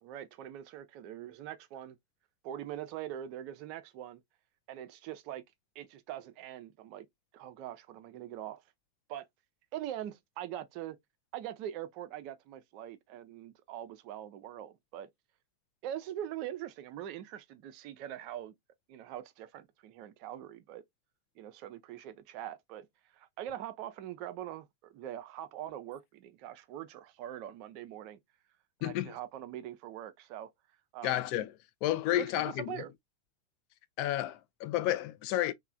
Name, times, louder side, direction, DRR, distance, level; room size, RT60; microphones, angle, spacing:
voice 1, 0.0-2.0 2.4-4.2 4.7-5.4 5.8-7.1 7.3-8.6 9.1-9.3 9.7-11.0 11.3-15.1 15.8-18.6 18.9-20.8 21.4-22.9 23.1-28.2 28.8-30.5 30.9-31.2 32.2-32.9, right 11 dB, 45° right, 0.4 m, -42 dB
voice 2, 28.8-29.1 31.0-31.5 31.8-32.8 34.0-35.5, left 13 dB, 45° left, 0.3 m, -31 dB
3.1 x 2.1 x 2.4 m
figure-of-eight pair, 90°, 0 cm